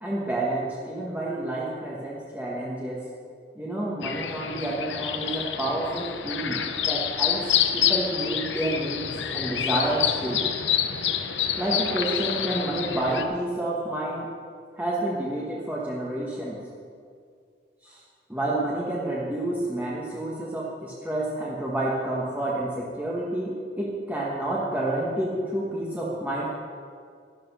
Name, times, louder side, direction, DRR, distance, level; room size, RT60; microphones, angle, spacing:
voice 1, 0.0-3.1 3.6-7.4 7.7-10.4 11.6-14.3 14.7-16.6 17.8-18.0 18.3-26.5, right 1 dB, 10° right, -5 dB, 1.3 m, -29 dB
sound 1, 4.0-13.2, left 9 dB, 75° left, 0.9 m, -27 dB
13.0 x 12.0 x 5.5 m, 2.3 s
head